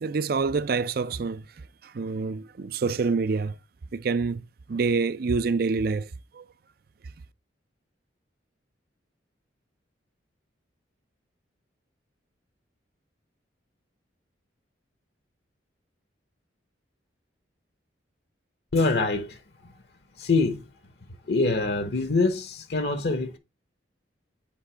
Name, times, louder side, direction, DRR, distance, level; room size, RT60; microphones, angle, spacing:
voice 1, 0.0-3.6 3.9-6.4, right 4 dB, 50° right, 0.4 m, -27 dB
voice 2, 18.7-19.7 20.2-20.7 21.3-23.4, left 3 dB, 60° left, 0.9 m, -25 dB
7.3 x 4.5 x 3.3 m
head